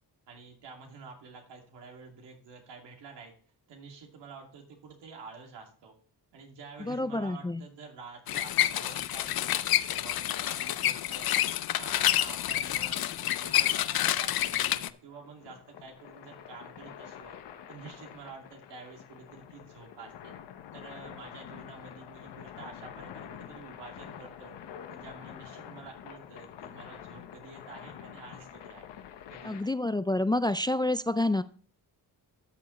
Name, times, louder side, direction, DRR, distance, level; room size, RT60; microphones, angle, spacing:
voice 1, 0.3-3.3 3.7-5.9 6.3-17.4 17.7-20.3 20.7-24.5 24.9-28.8 29.3-29.7, right 4 dB, 90° right, 1 dB, 2.5 m, -49 dB
voice 2, 6.8-7.6 29.4-31.4, left 2 dB, 10° left, 13 dB, 0.3 m, -28 dB
sound 1, 8.3-14.9, left 12 dB, 60° left, 0.6 m, -28 dB
sound 2, 11.6-29.6, left 9 dB, 85° left, 1.0 m, -47 dB
12.5 x 7.0 x 3.1 m, 0.43 s
cardioid pair, 85°, 41 cm